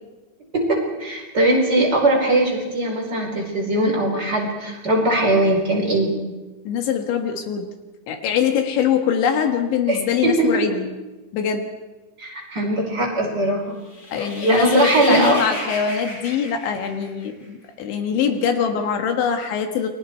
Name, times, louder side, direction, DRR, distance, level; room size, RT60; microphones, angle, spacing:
voice 1, 0.5-6.3 9.9-10.6 12.2-13.8 14.2-15.4, right 1 dB, 25° right, -2 dB, 4.7 m, -20 dB
voice 2, 6.7-7.7 8.1-11.0 11.3-11.7 14.1-19.9, left 7 dB, 80° left, 5 dB, 4.0 m, -23 dB
sound 1, 13.9-17.5, left 1 dB, 40° left, 7.4 m, -33 dB
29.0 x 23.0 x 4.6 m, 1.1 s
omnidirectional pair, 5.3 m